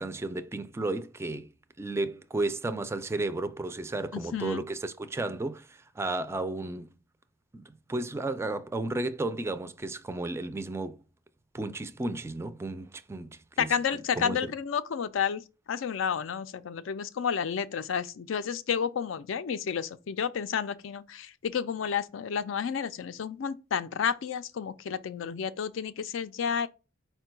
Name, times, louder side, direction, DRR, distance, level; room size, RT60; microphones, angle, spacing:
voice 1, 0.0-1.5 1.8-6.9 7.5-11.0 11.5-13.7 14.2-14.5, right 2 dB, 15° right, 0.3 m, -33 dB
voice 2, 4.1-4.6 13.6-26.7, left 7 dB, 75° left, 0.4 m, -31 dB
4.5 x 2.2 x 4.4 m
head